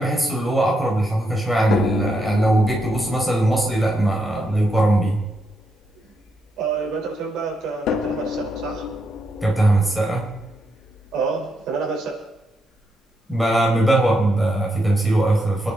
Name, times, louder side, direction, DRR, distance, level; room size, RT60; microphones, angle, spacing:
voice 1, 0.0-5.2 9.4-10.3 13.3-15.7, right 1 dB, ahead, -2 dB, 4.4 m, -20 dB
sound 1, 1.7-6.9 7.9-11.8 12.8-12.9 13.3-13.4, left 8 dB, 90° left, 2.0 m, -31 dB
voice 2, 6.6-8.8 11.1-12.2, right 5 dB, 90° right, -1 dB, 5.2 m, -27 dB
25.0 x 11.0 x 4.5 m, 1.1 s
cardioid pair, 180°, 0 cm